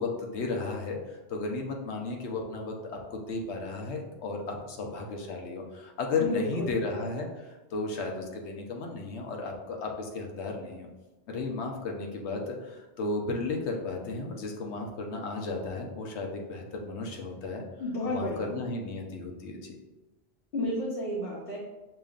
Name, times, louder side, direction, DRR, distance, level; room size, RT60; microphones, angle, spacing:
voice 1, 0.0-10.9 11.3-17.6 18.0-19.8, left 3 dB, 90° left, 1 dB, 1.0 m, -34 dB
voice 2, 6.2-6.8 17.8-18.6 20.5-21.6, left 1 dB, 60° left, -6 dB, 1.0 m, -31 dB
6.7 x 3.0 x 2.4 m, 1.1 s
omnidirectional pair, 1.1 m